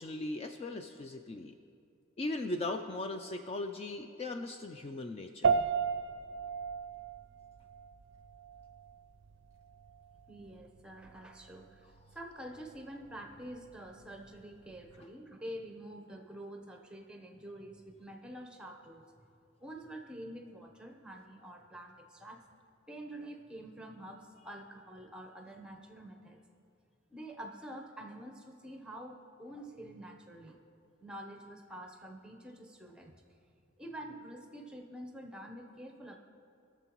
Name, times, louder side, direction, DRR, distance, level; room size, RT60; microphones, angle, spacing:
voice 1, 0.0-1.5 2.2-5.6, left 2 dB, 30° left, 6 dB, 0.3 m, -38 dB
sound 1, 5.4-15.0, right 6 dB, 60° right, 0.4 m, -37 dB
voice 2, 10.3-19.0 19.6-22.4 22.9-26.4 27.1-30.6 31.0-33.2 33.8-36.2, right 1 dB, 5° right, 3 dB, 0.9 m, -47 dB
21.0 x 7.0 x 3.0 m, 2.4 s
head